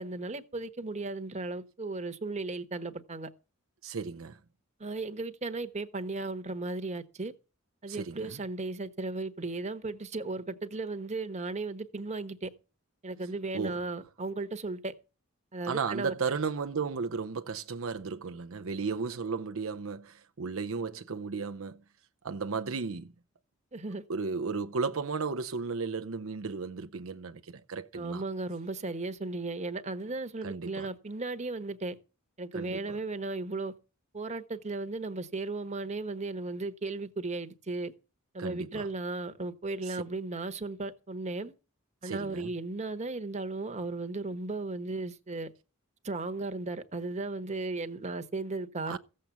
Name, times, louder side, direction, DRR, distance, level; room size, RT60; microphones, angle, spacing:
voice 1, 0.0-3.3 4.8-7.3 7.8-12.5 13.0-14.9 15.5-16.1 23.7-24.0 27.9-32.0 32.4-33.7 34.1-37.9 38.3-41.5 42.0-45.5 46.0-49.0, right 3 dB, 35° right, 1.2 m, -35 dB
voice 2, 3.8-4.4 7.9-8.4 13.5-13.8 15.7-21.8 22.2-23.1 24.1-28.2 30.4-30.9 32.5-33.0 38.4-38.9 39.8-40.0 42.0-42.5 48.9-49.0, right 5 dB, 70° right, 0.7 m, -34 dB
15.0 x 7.6 x 7.0 m
head